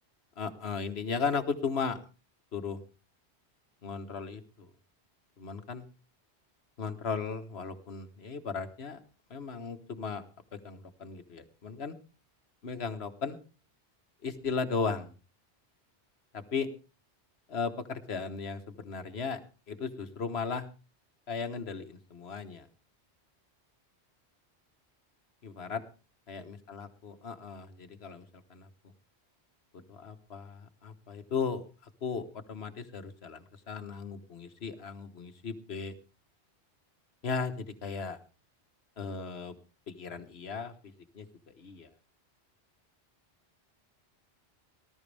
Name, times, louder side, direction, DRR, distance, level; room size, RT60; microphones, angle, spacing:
voice 1, 0.4-2.0 2.5-2.8 3.8-4.7 5.4-5.8 6.8-9.0 9.3-10.2 10.6-11.9 12.6-13.4 14.2-15.1 16.3-16.7 17.5-19.4 19.7-20.7 21.3-22.7 25.4-25.8 26.3-28.2 28.5-28.7 29.9-31.6 32.0-35.9 37.2-38.2 39.0-39.6 39.9-40.7 41.1-41.9, left 5 dB, 65° left, 9 dB, 1.6 m, -36 dB
19.5 x 12.5 x 3.4 m, 0.33 s
omnidirectional pair, 1.1 m